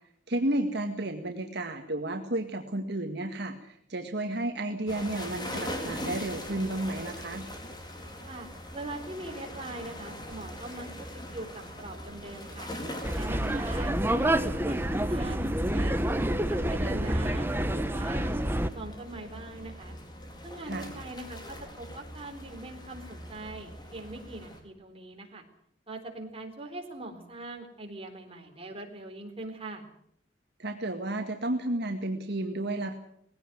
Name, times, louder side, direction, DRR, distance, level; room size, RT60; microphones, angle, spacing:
voice 1, 0.3-7.5 20.6-20.9 30.6-32.9, right 1 dB, 65° right, 4 dB, 2.0 m, -32 dB
sound 1, 4.9-24.6, left 1 dB, 25° left, 4.3 m, -42 dB
voice 2, 8.3-11.5 11.8-12.7 13.1-16.1 16.5-18.3 18.7-20.0 20.4-25.4 25.9-29.9, right 2 dB, 35° right, 3 dB, 4.0 m, -42 dB
sound 2, 13.0-18.7, right 1 dB, 10° right, 1.1 m, -28 dB
20.0 x 17.0 x 9.2 m, 0.69 s
head